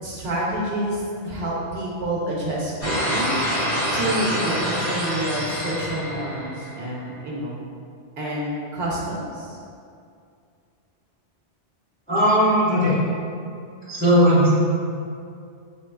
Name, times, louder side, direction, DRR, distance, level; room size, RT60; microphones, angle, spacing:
voice 1, 0.0-3.6 3.9-7.6 8.2-9.6, right 1 dB, 70° right, -4 dB, 0.8 m, -28 dB
sound 1, 2.8-6.9, equal, 60° left, 1.9 m, -26 dB
voice 2, 12.1-13.0 13.9-14.5, equal, 10° left, -9 dB, 0.8 m, -17 dB
4.2 x 3.0 x 2.2 m, 2.4 s
omnidirectional pair, 1.2 m